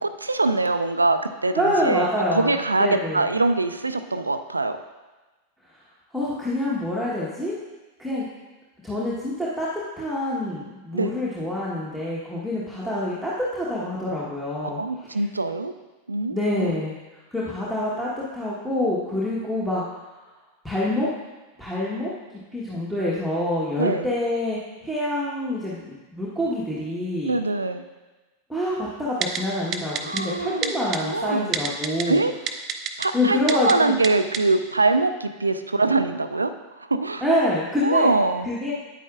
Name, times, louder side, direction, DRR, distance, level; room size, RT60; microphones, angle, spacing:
voice 1, 0.0-4.8 10.9-11.1 14.8-15.7 16.1-16.4 16.6-16.8 23.8-24.1 27.2-27.8 30.0-30.7 31.0-31.5 32.1-32.3 33.0-36.5 36.9-37.2 37.8-38.5, right 3 dB, 80° right, 10 dB, 0.4 m, -23 dB
voice 2, 1.5-3.2 6.1-7.6 8.0-8.3 8.8-9.7 10.0-15.3 16.3-16.9 17.3-19.8 20.6-21.1 21.6-27.4 28.5-32.2 33.1-33.9 37.2-38.1 38.4-38.7, left 1 dB, ahead, -8 dB, 1.2 m, -26 dB
Typing, 29.2-29.4 29.7-30.2 30.6-31.0 31.5-32.0 32.5-33.1 33.5-33.7 34.0-34.1 34.3-34.4, right 8 dB, 30° right, 0.6 m, -26 dB
9.2 x 9.0 x 2.4 m, 1.2 s
figure-of-eight pair, 90°, 0 cm